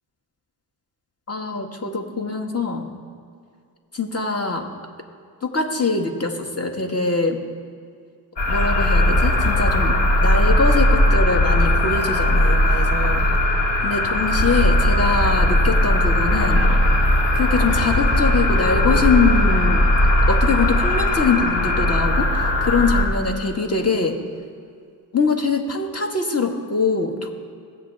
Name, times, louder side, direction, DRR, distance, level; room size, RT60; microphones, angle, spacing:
voice 1, 1.3-2.9 3.9-4.7 5.4-7.4 8.5-13.2 13.8-16.7 17.4-19.9 20.3-24.2 25.1-27.3, left 4 dB, 35° left, 3 dB, 2.0 m, -23 dB
sound 1, 8.4-23.0, left 1 dB, 75° left, 2.3 m, -18 dB
20.5 x 7.9 x 3.6 m, 2.3 s
cardioid pair, 55°, 42 cm